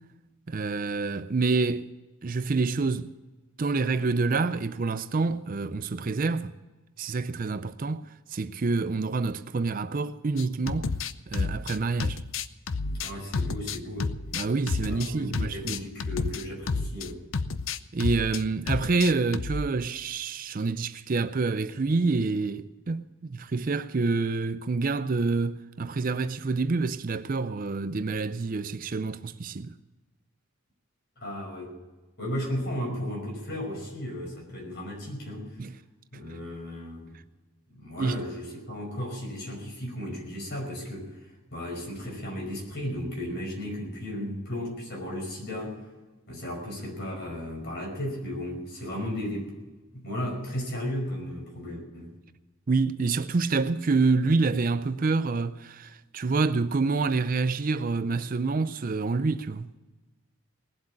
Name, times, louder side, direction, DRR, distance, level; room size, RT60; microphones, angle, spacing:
voice 1, 0.5-1.9 2.2-3.1 3.6-6.5 7.0-10.9 11.3-12.2 14.3-15.8 17.9-29.7 35.6-35.7 38.0-38.2 52.7-59.7, right 3 dB, 40° right, 0.4 m, -27 dB
sound 1, 10.4-17.1 17.3-18.4 18.7-19.6, left 4 dB, 65° left, 0.6 m, -30 dB
voice 2, 12.8-14.5 14.8-17.2 31.2-31.7 32.2-35.6 36.1-37.1 37.7-45.8 46.3-49.6 49.9-52.1, left 1 dB, 50° left, 5.4 m, -35 dB
19.5 x 7.9 x 8.5 m
head